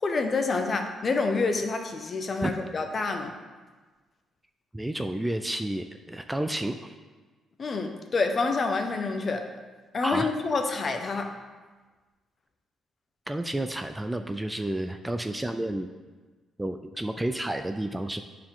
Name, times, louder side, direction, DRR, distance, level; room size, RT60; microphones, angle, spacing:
voice 1, 0.0-3.3 7.6-9.4 9.9-11.3, left 3 dB, 40° left, 5 dB, 0.9 m, -27 dB
voice 2, 4.7-6.9 10.0-10.3 13.3-15.9 16.6-18.2, right 1 dB, 10° right, 7 dB, 0.4 m, -31 dB
9.6 x 4.7 x 3.8 m, 1.3 s
cardioid pair, 90°, 0 cm